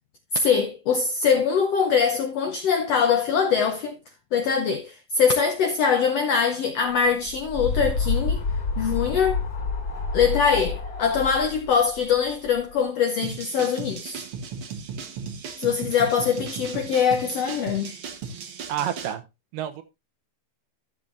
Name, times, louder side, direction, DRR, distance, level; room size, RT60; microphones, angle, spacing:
voice 1, 0.3-4.0 4.3-8.4 8.8-9.4 10.1-14.2 15.6-18.0, left 6 dB, 75° left, 1.4 m, -23 dB
sound 1, 7.1-12.7, left 4 dB, 35° left, 3.0 m, -28 dB
sound 2, 13.2-19.1, right 6 dB, 55° right, 1.6 m, -36 dB
voice 2, 18.7-19.2 19.5-19.8, right 10 dB, 75° right, 2.4 m, -28 dB
14.0 x 7.3 x 2.6 m
omnidirectional pair, 4.0 m